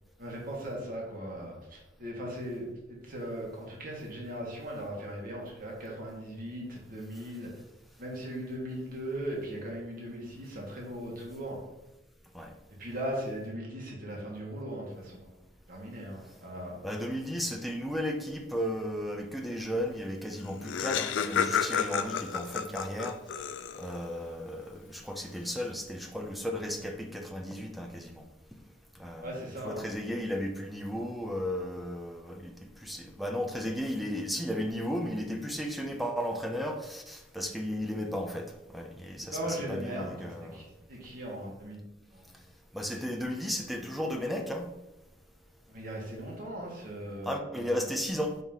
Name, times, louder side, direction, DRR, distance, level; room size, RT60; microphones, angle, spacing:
voice 1, 0.2-7.5 8.0-11.6 12.8-15.3 15.7-16.8 29.2-29.9 39.2-41.8 42.1-42.3 45.7-47.8, right 1 dB, 50° right, -3 dB, 1.6 m, -38 dB
voice 2, 16.8-23.2 23.7-28.2 29.0-32.5 32.8-40.7 42.7-44.7 47.2-48.4, equal, ahead, 3 dB, 0.6 m, -34 dB
Laughter, 20.1-20.2 20.4-24.0, left 7 dB, 85° left, 0.4 m, -31 dB
5.5 x 3.1 x 5.6 m, 0.95 s
head